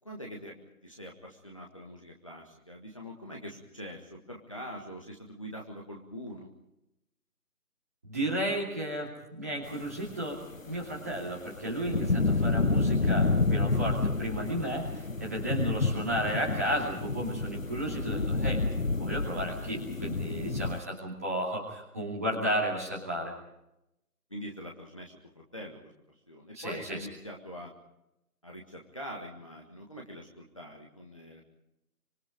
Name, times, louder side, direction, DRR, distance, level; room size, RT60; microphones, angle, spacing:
voice 1, 0.0-0.5 0.8-6.5 24.3-25.9 26.3-27.7 28.4-31.4, equal, 20° left, -1 dB, 1.6 m, -44 dB
voice 2, 8.0-18.6 19.0-23.3 26.5-27.1, right 1 dB, 10° right, -4 dB, 2.5 m, -33 dB
sound 1, 10.3-20.8, left 3 dB, 60° left, 1.2 m, -29 dB
26.0 x 25.0 x 5.1 m, 0.84 s
figure-of-eight pair, 170°, 46 cm